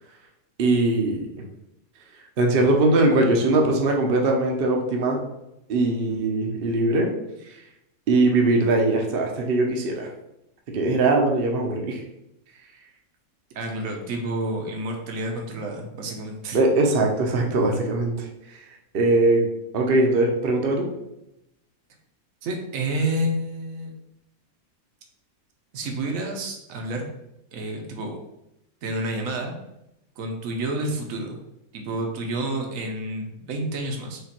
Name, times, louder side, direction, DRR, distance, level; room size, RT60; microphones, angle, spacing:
voice 1, 0.6-1.4 2.4-5.2 5.7-7.1 7.5-7.6 8.1-10.1 10.7-12.0 16.5-18.6 18.9-19.5 19.7-20.9, right 2 dB, 50° right, 1 dB, 0.8 m, -21 dB
voice 2, 13.5-16.6 22.4-23.9 25.7-27.0 27.5-28.2 28.8-29.5 30.2-31.4 31.7-34.2, right 1 dB, 70° right, 2 dB, 1.2 m, -29 dB
5.0 x 2.4 x 4.3 m, 0.85 s
omnidirectional pair, 1.5 m